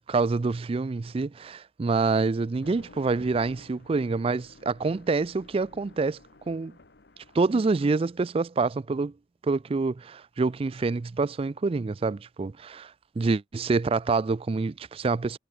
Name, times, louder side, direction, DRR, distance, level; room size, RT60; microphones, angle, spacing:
voice 1, 0.1-6.2 6.5-6.7 7.3-9.1 9.4-12.8 13.2-15.4, right 3 dB, 30° right, 0.4 m, -26 dB
sound 1, 2.5-8.2, left 2 dB, 60° left, 1.3 m, -54 dB
head